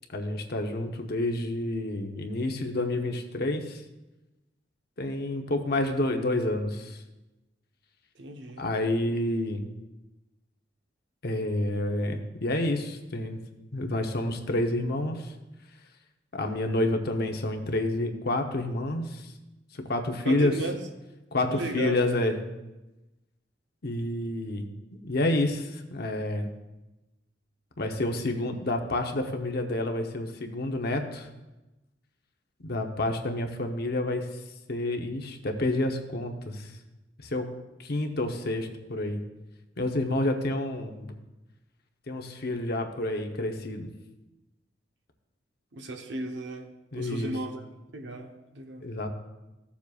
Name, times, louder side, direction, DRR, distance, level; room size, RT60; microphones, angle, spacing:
voice 1, 0.1-3.8 5.0-7.0 8.6-9.6 11.2-13.4 13.7-15.3 16.3-19.3 19.7-20.5 21.3-22.3 23.8-26.5 27.8-31.3 32.6-34.4 34.7-36.7 37.2-37.4 37.8-39.2 39.8-41.1 42.1-43.9 46.9-47.3 48.8-49.1, left 1 dB, 55° left, 4 dB, 0.9 m, -29 dB
voice 2, 8.1-8.6 20.2-20.8 21.5-22.0 45.7-47.6 47.9-48.9, right 2 dB, 70° right, 4 dB, 1.0 m, -35 dB
15.0 x 7.2 x 2.4 m, 1.0 s
head